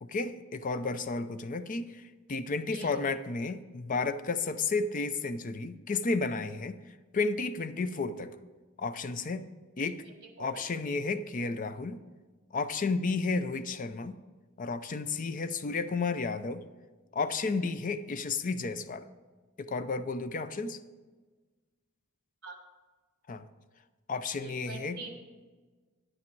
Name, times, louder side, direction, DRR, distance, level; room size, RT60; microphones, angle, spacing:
voice 1, 0.0-2.0 2.3-6.8 7.1-8.3 8.8-9.4 9.8-10.0 10.4-12.0 12.5-14.2 14.6-16.6 17.1-19.1 19.6-20.8 23.3-23.4 24.1-25.0, left 4 dB, 40° left, 12 dB, 0.5 m, -32 dB
voice 2, 24.4-25.2, right 3 dB, 50° right, 4 dB, 1.4 m, -43 dB
9.9 x 8.6 x 4.6 m, 1.3 s
head